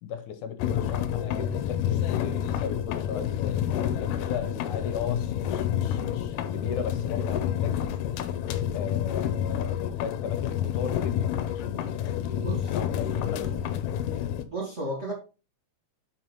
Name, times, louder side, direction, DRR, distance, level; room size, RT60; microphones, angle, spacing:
voice 1, 0.0-7.8 8.7-13.9, left 7 dB, 75° left, 2.3 m, -36 dB
sound 1, 0.6-14.5, left 10 dB, 90° left, 2.4 m, -29 dB
voice 2, 14.5-15.1, right 1 dB, 25° right, 2.0 m, -33 dB
7.6 x 5.4 x 4.5 m
omnidirectional pair, 3.7 m